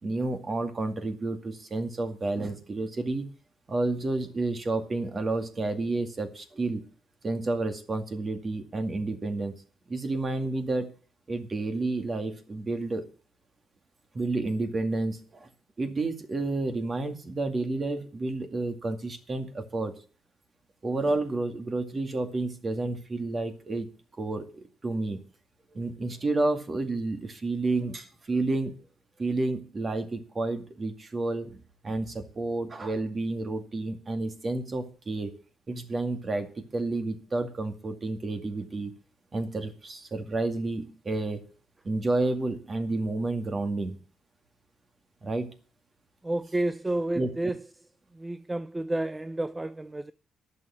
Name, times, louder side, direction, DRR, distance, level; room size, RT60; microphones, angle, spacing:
voice 1, 0.0-3.3 3.7-6.8 7.2-9.5 9.9-10.9 11.3-13.1 14.1-15.5 15.8-19.9 20.8-23.9 24.2-25.2 25.7-28.7 29.2-35.3 35.7-38.9 39.3-41.4 41.8-44.0 45.2-45.5 47.2-47.3, right 2 dB, 35° right, 2.2 m, -30 dB
voice 2, 46.2-47.6 48.1-50.1, right 1 dB, 15° right, 0.5 m, -30 dB
11.0 x 6.8 x 8.4 m
cardioid pair, 90°, 0 cm